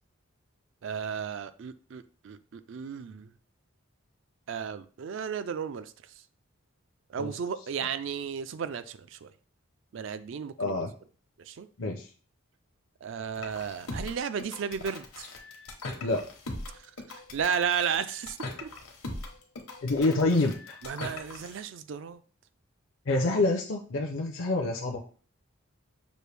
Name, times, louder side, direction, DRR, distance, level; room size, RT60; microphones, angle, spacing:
voice 1, 0.8-3.3 4.5-5.9 7.1-9.3 9.9-10.8 11.4-11.7 13.0-15.3 17.3-18.7 20.8-22.2, right 7 dB, 60° right, 0.3 m, -34 dB
voice 2, 10.6-10.9 11.8-12.1 16.0-16.2 19.8-20.8 23.1-25.0, left 2 dB, 60° left, 0.5 m, -27 dB
sound 1, 13.3-21.6, left 2 dB, 85° left, 1.0 m, -40 dB
6.2 x 2.5 x 3.3 m
head